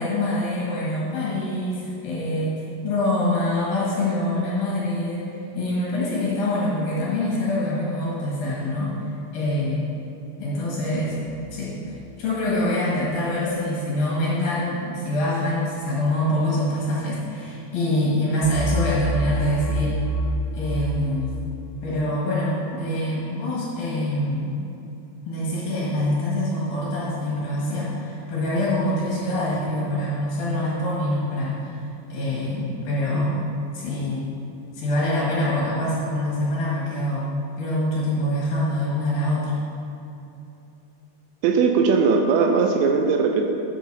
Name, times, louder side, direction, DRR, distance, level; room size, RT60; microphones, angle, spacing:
voice 1, 0.0-8.9 9.3-9.9 10.4-11.2 11.5-11.7 12.2-20.0 20.5-21.4 21.8-24.6 25.2-31.8 32.1-33.4 33.7-34.2 34.7-37.3 37.6-39.6, left 1 dB, 60° left, -7 dB, 3.0 m, -25 dB
sound 1, 11.0-11.9 18.4-21.4, right 1 dB, 85° left, 1.9 m, -28 dB
voice 2, 41.4-43.5, right 5 dB, 85° right, 4 dB, 2.7 m, -19 dB
12.5 x 8.2 x 2.7 m, 2.8 s
omnidirectional pair, 5.3 m